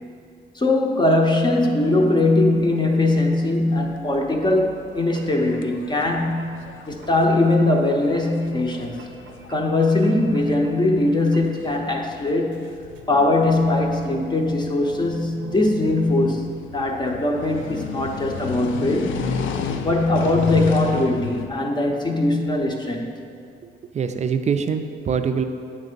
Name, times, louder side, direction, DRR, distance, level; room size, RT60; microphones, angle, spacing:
voice 1, 0.5-6.6 6.9-9.0 9.5-12.7 13.1-19.2 19.8-23.2, left 2 dB, 20° left, 1 dB, 0.7 m, -21 dB
sound 1, 2.0-21.5, left 7 dB, 80° left, 0.5 m, -35 dB
sound 2, 5.1-5.6 6.0-6.6 7.0-7.6 7.9-8.4 8.7-11.1 11.3-11.7 12.5-14.6 14.9-17.1 17.6-19.8, left 1 dB, 80° right, 0.7 m, -41 dB
voice 2, 23.6-25.4, right 6 dB, 35° right, 8 dB, 0.5 m, -24 dB
8.8 x 3.3 x 5.2 m, 2.4 s
cardioid pair, 90°, 20 cm